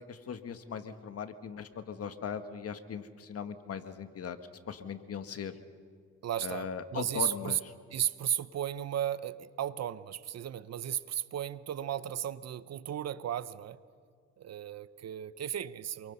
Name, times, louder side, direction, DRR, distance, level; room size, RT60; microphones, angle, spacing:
voice 1, 0.0-4.4 4.7-5.5 6.4-7.7, left 7 dB, 50° left, 9 dB, 1.8 m, -39 dB
voice 2, 6.2-6.7 6.9-7.6 7.9-13.8 14.4-16.1, right 10 dB, 55° right, 16 dB, 0.9 m, -35 dB
27.5 x 23.5 x 5.6 m, 2.1 s
cardioid pair, 90°, 30 cm